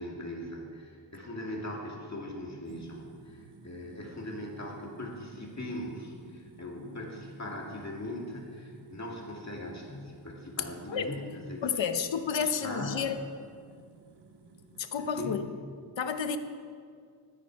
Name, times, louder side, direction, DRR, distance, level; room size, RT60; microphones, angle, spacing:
voice 1, 0.0-11.8 12.4-13.1 15.0-15.5, left 1 dB, 40° left, -1 dB, 2.2 m, -40 dB
sound 1, 2.6-15.4, right 4 dB, 65° right, 1.1 m, -55 dB
voice 2, 11.6-13.2 14.8-15.4 16.0-16.4, left 6 dB, 85° left, 9 dB, 0.8 m, -30 dB
14.5 x 9.5 x 4.6 m, 2.2 s
wide cardioid pair, 95°, 44 cm